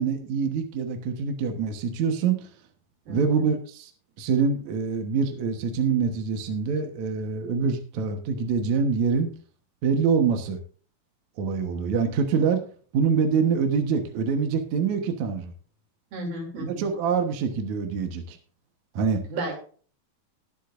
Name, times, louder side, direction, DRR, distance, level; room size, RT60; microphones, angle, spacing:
voice 1, 0.0-2.5 3.1-3.9 4.2-9.3 9.8-10.6 11.4-12.6 12.9-15.5 16.6-18.4 19.0-19.2, right 5 dB, 60° right, 4 dB, 2.3 m, -25 dB
voice 2, 3.1-3.5 16.1-16.8 19.3-19.5, right 2 dB, 80° right, 1 dB, 4.7 m, -33 dB
20.0 x 7.5 x 2.6 m, 0.42 s
omnidirectional pair, 4.2 m